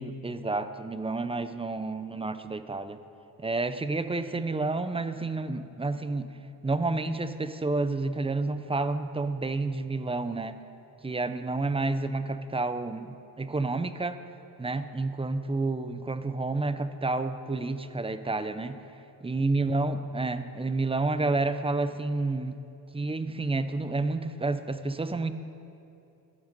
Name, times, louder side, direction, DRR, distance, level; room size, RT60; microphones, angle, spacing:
voice 1, 0.0-3.0 3.4-6.3 6.6-10.5 11.0-14.2 14.6-18.8 19.2-22.6 22.9-25.3, right 3 dB, 15° right, 11 dB, 0.5 m, -30 dB
12.5 x 11.0 x 5.3 m, 2.7 s
cardioid pair, 105°, 40 cm